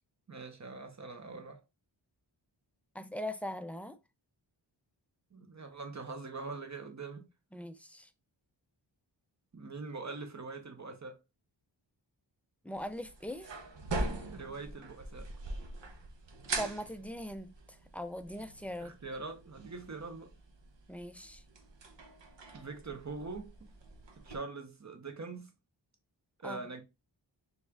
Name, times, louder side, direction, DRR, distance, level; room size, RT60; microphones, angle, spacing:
voice 1, 0.3-1.6 5.3-7.3 9.5-11.2 14.3-15.3 18.8-20.3 22.5-23.5 24.2-25.5 26.4-26.8, right 3 dB, 40° right, 1.0 m, -43 dB
voice 2, 2.9-4.0 7.5-8.1 12.6-13.5 16.6-17.5 17.9-18.9 20.9-21.4 26.4-26.6, equal, 5° left, 0.4 m, -40 dB
sound 1, 12.7-24.4, right 2 dB, 70° right, 0.9 m, -43 dB
4.2 x 3.5 x 2.3 m
wide cardioid pair, 70°, 45 cm